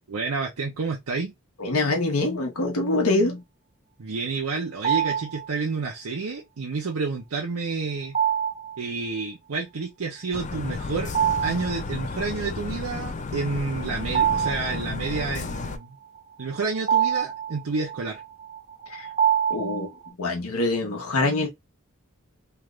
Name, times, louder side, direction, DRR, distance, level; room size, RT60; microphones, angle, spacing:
voice 1, 0.1-1.3 4.0-8.2 8.8-11.1 11.4-16.0 16.4-18.2, right 4 dB, 75° right, 0.6 m, -29 dB
voice 2, 1.6-3.4 18.9-19.1 19.5-19.9 20.2-21.5, left 2 dB, 75° left, 1.1 m, -24 dB
sound 1, 4.8-5.5 8.1-8.8 11.0-11.8 12.1-12.2 13.7-15.2 16.2-20.1, right 9 dB, 30° right, 0.7 m, -25 dB
sound 2, 10.3-15.8, left 4 dB, 35° left, 0.4 m, -33 dB
3.2 x 2.5 x 3.2 m
head